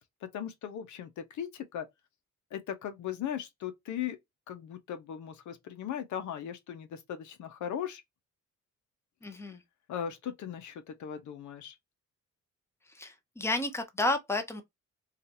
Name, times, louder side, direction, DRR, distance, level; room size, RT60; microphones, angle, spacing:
voice 1, 0.2-1.9 2.5-4.2 4.5-8.0 9.9-11.8, left 9 dB, 75° left, 0.7 m, -38 dB
voice 2, 9.2-9.6 12.9-14.6, left 2 dB, 10° left, 0.8 m, -31 dB
2.8 x 2.4 x 2.6 m
cardioid pair, 90°, 30 cm